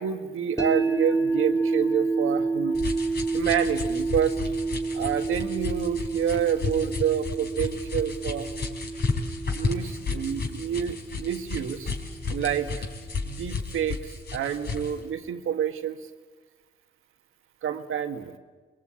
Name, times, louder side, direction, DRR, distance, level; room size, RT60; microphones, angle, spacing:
voice 1, 0.0-2.7 3.3-4.4 4.9-8.5 9.5-11.9 12.3-12.9 13.2-16.0 17.6-18.4, right 9 dB, 80° right, 7 dB, 1.7 m, -28 dB
sound 1, 0.6-12.7, right 3 dB, 15° left, 3.6 m, -29 dB
sound 2, 2.7-15.0, left 4 dB, 50° left, 4.5 m, -33 dB
25.0 x 21.0 x 8.8 m, 1.4 s
cardioid pair, 70°, 21 cm